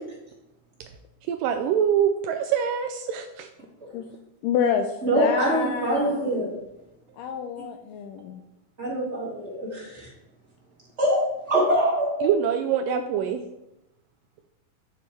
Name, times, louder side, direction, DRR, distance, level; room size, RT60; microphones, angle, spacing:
voice 1, 1.3-3.5 12.2-13.4, right 8 dB, 80° right, 6 dB, 2.0 m, -24 dB
voice 2, 4.4-6.2 7.2-8.4, left 7 dB, 80° left, 6 dB, 2.0 m, -28 dB
voice 3, 5.0-6.5 8.8-10.1 11.0-12.3, right 1 dB, 25° right, -5 dB, 1.9 m, -24 dB
9.1 x 6.8 x 3.3 m, 0.87 s
omnidirectional pair, 4.2 m